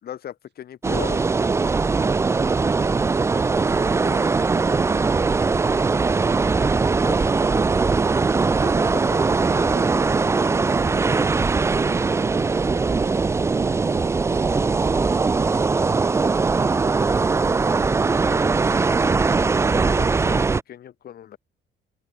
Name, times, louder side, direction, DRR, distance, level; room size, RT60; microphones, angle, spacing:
voice 1, 0.0-1.3 4.0-4.3 7.0-7.4 8.6-11.2 19.8-21.4, left 10 dB, 50° left, 3.3 m, -39 dB
sound 1, 0.8-20.6, right 4 dB, 15° right, 0.4 m, -20 dB
voice 2, 1.8-1.9, right 12 dB, 60° right, 6.3 m, -45 dB
cardioid pair, 165°, 21 cm